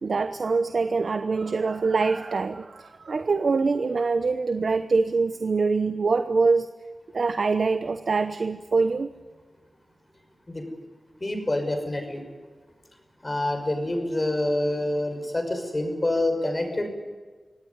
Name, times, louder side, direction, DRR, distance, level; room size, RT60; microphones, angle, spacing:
voice 1, 0.0-6.7 7.1-9.1, right 4 dB, 70° right, 9 dB, 0.9 m, -24 dB
voice 2, 11.2-12.2 13.2-16.9, left 1 dB, 30° left, 5 dB, 5.8 m, -27 dB
25.0 x 18.0 x 9.7 m, 1.4 s
wide cardioid pair, 90°, 0 cm